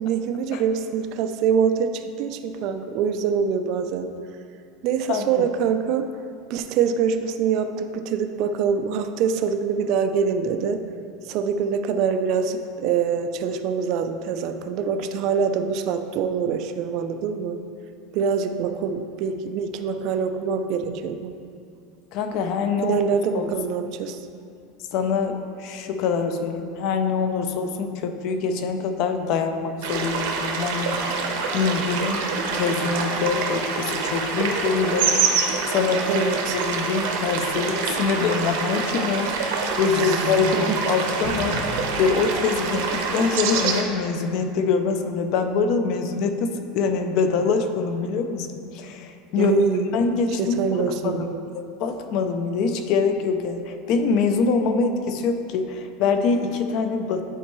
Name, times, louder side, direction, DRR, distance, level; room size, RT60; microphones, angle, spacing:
voice 1, 0.0-4.2 4.8-6.1 6.5-10.8 11.2-17.6 18.1-21.3 22.8-24.2 36.1-36.6 39.9-40.8 49.4-49.9 50.4-51.4, right 6 dB, 40° right, 8 dB, 0.3 m, -24 dB
voice 2, 5.1-5.5 22.1-23.0 23.3-23.5 24.9-32.2 32.5-49.6 49.9-51.2 51.5-57.2, left 5 dB, 40° left, 7 dB, 0.4 m, -24 dB
sound 1, 29.8-43.8, right 5 dB, 60° right, 0.8 m, -26 dB
sound 2, 41.2-43.7, left 1 dB, 70° left, 1.6 m, -36 dB
9.9 x 4.4 x 3.0 m, 2.4 s
supercardioid pair, 180°, 0 cm